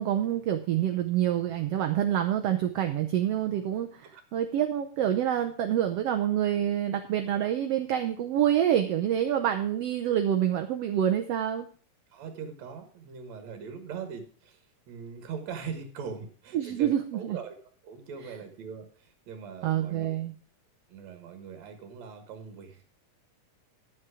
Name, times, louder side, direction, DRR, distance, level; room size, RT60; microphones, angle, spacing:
voice 1, 0.0-11.7 16.5-17.4 19.6-20.3, right 10 dB, 80° right, 6 dB, 1.4 m, -27 dB
voice 2, 12.1-14.6 14.9-17.6 17.8-20.1 20.9-22.8, right 6 dB, 60° right, 6 dB, 2.6 m, -41 dB
11.0 x 7.5 x 4.8 m, 0.43 s
omnidirectional pair, 3.6 m